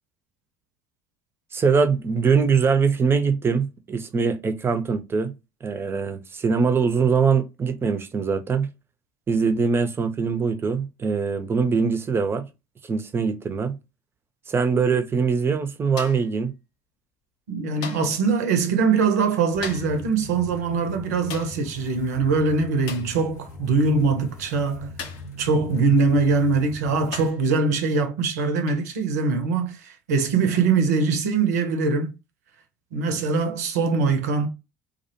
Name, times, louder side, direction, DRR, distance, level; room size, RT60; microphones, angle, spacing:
voice 1, 1.5-5.3 5.6-8.7 9.3-12.5 12.8-13.8 14.5-16.5, right 5 dB, 25° right, 0.5 m, -22 dB
sound 1, 16.0-16.4 17.8-18.2 19.6-20.0 21.3-21.6 22.9-23.2 25.0-25.3 26.4-26.5 27.1-27.5 28.7-28.9 30.5-30.7, left 6 dB, 60° left, 0.5 m, -38 dB
voice 2, 17.5-24.9 25.4-32.1 32.9-34.5, right 4 dB, 75° right, 0.5 m, -22 dB
sound 2, 19.5-27.3, left 1 dB, 80° left, 0.9 m, -41 dB
2.4 x 2.1 x 2.7 m
figure-of-eight pair, 60°, 9 cm